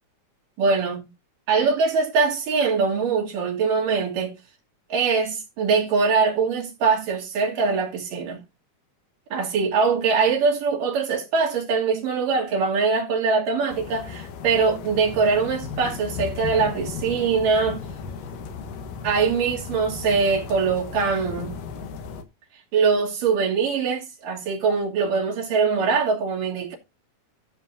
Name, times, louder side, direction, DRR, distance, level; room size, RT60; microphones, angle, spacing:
voice 1, 0.6-1.1 1.5-4.4 4.9-8.4 9.3-17.8 19.0-21.6 22.7-26.8, right 5 dB, 85° right, 4.2 m, -22 dB
sound 1, 13.7-22.2, left 6 dB, 80° left, 3.0 m, -36 dB
15.0 x 7.8 x 2.6 m
omnidirectional pair, 3.7 m